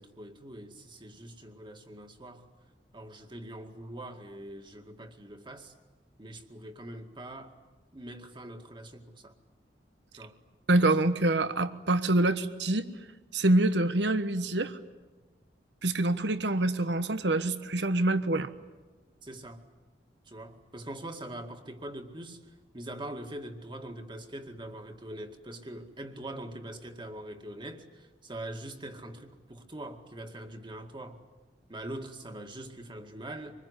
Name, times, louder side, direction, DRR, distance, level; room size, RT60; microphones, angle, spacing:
voice 1, 0.0-2.5 2.9-5.7 6.2-7.5 7.9-9.3 10.1-10.3 10.8-11.0 19.2-19.6 20.3-22.4 22.7-31.2 31.7-33.5, right 1 dB, 25° right, 5 dB, 2.1 m, -43 dB
voice 2, 10.7-12.9 13.3-14.8 15.8-18.5, right 2 dB, 75° right, 11 dB, 1.2 m, -26 dB
25.5 x 21.0 x 9.9 m, 1.2 s
head